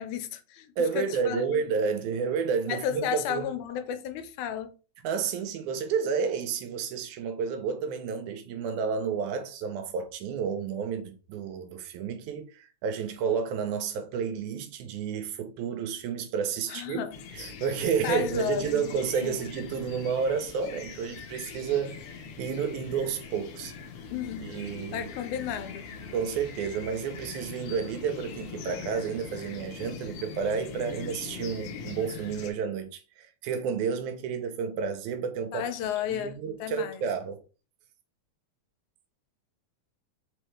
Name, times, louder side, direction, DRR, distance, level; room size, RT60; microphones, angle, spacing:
voice 1, 0.0-1.6 2.7-4.7 16.7-17.2 18.0-18.8 19.2-19.4 24.1-24.6 24.9-25.9 35.5-37.0, left 9 dB, 85° left, 2.0 m, -33 dB
voice 2, 0.8-3.5 5.0-17.0 17.3-22.0 22.4-23.7 24.4-25.1 26.1-35.7 36.1-37.4, right 6 dB, 85° right, 2.2 m, -31 dB
sound 1, 17.1-32.5, left 5 dB, 70° left, 1.7 m, -42 dB
4.9 x 3.2 x 3.1 m
omnidirectional pair, 3.4 m